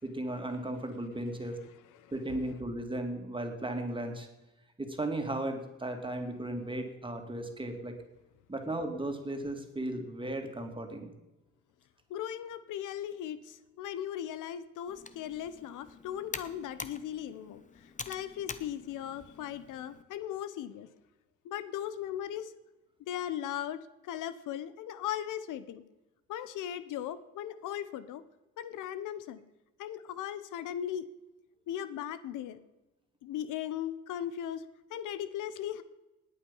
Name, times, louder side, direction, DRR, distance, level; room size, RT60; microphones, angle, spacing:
voice 1, 0.0-1.6 2.1-4.3 4.8-7.9 8.5-11.1, right 1 dB, 15° right, 4 dB, 2.6 m, -36 dB
voice 2, 12.1-20.9 21.4-22.5 23.0-25.8 26.3-28.2 28.6-29.4 29.8-31.1 31.7-32.6 33.2-34.6 34.9-35.8, left 10 dB, 85° left, 14 dB, 0.9 m, -38 dB
Computer keyboard, 14.9-20.0, left 4 dB, 25° left, 1.0 m, -46 dB
19.0 x 8.7 x 5.5 m, 1.0 s
cardioid pair, 90°, 30 cm